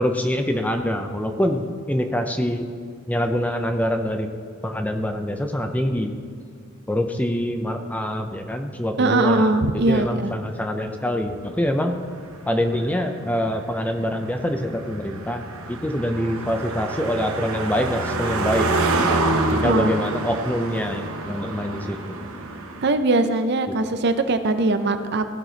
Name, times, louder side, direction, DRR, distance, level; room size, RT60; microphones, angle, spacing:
voice 1, 0.0-2.7 3.1-4.3 4.6-6.2 6.9-12.0 12.5-15.4 15.7-18.7 19.5-22.2 23.7-23.8, equal, 5° left, 5 dB, 0.5 m, -25 dB
voice 2, 9.0-10.3 19.6-20.0 22.8-25.3, right 2 dB, 50° right, 9 dB, 0.5 m, -21 dB
Car passing by, 11.7-22.9, right 2 dB, 85° right, 1.0 m, -27 dB
15.5 x 6.0 x 3.9 m, 2.3 s
head